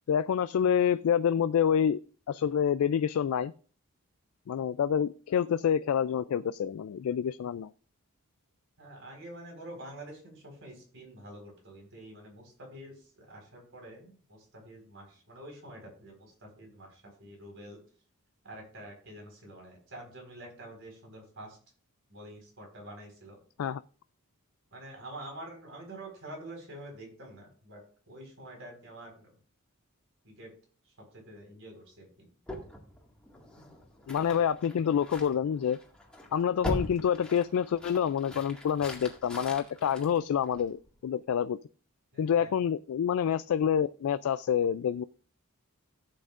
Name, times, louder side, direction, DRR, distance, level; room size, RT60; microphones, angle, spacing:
voice 1, 0.1-2.0 2.3-3.5 4.5-7.7 23.6-23.8 34.1-35.8 36.3-41.6 42.2-45.0, left 8 dB, 70° left, 14 dB, 0.3 m, -27 dB
voice 2, 8.8-17.8 18.4-21.6 22.1-23.4 24.7-27.8 28.1-29.3 30.2-30.5 30.8-32.3 42.1-42.5, right 1 dB, 60° right, 1 dB, 4.5 m, -47 dB
sound 1, 32.5-40.9, left 1 dB, 5° left, 1.9 m, -42 dB
16.0 x 7.8 x 2.5 m, 0.41 s
head